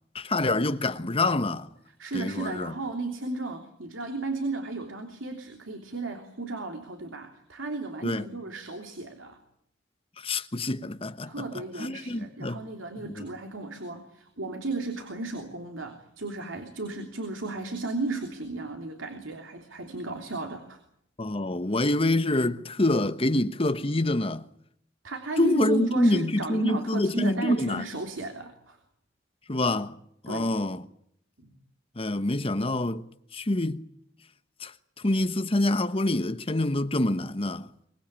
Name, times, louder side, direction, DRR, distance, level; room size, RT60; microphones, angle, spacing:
voice 1, 0.1-1.7 2.1-2.7 8.0-8.3 10.2-11.3 11.8-12.6 13.0-13.3 21.2-24.5 25.4-27.8 29.5-30.0 30.2-30.8 32.0-33.0 33.3-33.9 34.6-34.7 35.0-37.7, left 2 dB, 30° left, 1.2 m, -26 dB
voice 2, 2.0-9.4 11.3-20.8 25.0-28.8 30.3-30.5 31.4-31.5, right 3 dB, 85° right, 3.2 m, -34 dB
24.5 x 20.5 x 9.0 m
head